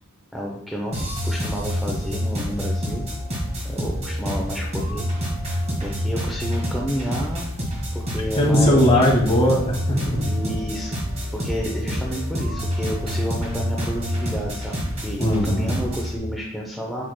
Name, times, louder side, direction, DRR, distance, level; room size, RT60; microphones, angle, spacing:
voice 1, 0.3-1.0 1.2-3.1 3.6-5.1 5.8-7.5 7.9-9.0 10.2-10.9 11.3-14.7 15.0-17.0, equal, ahead, -2 dB, 0.6 m, -30 dB
sound 1, 0.9-16.2, equal, 30° right, 1.8 m, -27 dB
voice 2, 8.4-10.2 15.2-15.7, equal, 25° left, -3 dB, 1.9 m, -19 dB
7.5 x 5.8 x 2.2 m, 0.79 s
head